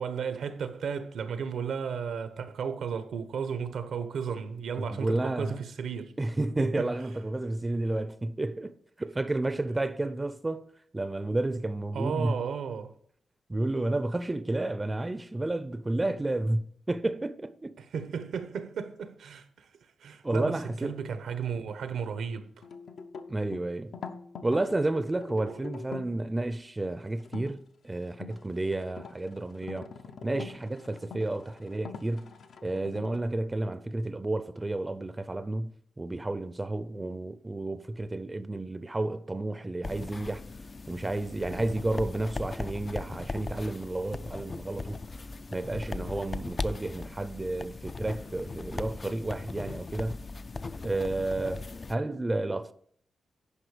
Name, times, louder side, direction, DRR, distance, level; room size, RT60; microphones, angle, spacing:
voice 1, 0.0-6.1 6.6-6.9 11.9-12.9 17.8-19.7 20.0-22.7 25.4-25.6, right 6 dB, 85° right, 0.9 m, -34 dB
voice 2, 4.8-5.6 6.2-8.7 9.0-10.7 10.9-12.4 13.5-17.7 20.2-20.9 23.3-23.9 24.4-29.9 30.2-32.3 32.6-40.4 40.9-45.0 45.5-50.2 50.8-52.7, right 2 dB, 20° right, 0.5 m, -31 dB
sound 1, 22.6-26.2 27.2-27.5 28.0-33.2, left 5 dB, 75° left, 0.7 m, -44 dB
sound 2, 39.8-52.0, left 3 dB, 35° left, 0.3 m, -39 dB
9.9 x 5.3 x 4.9 m
cardioid pair, 95°, 0 cm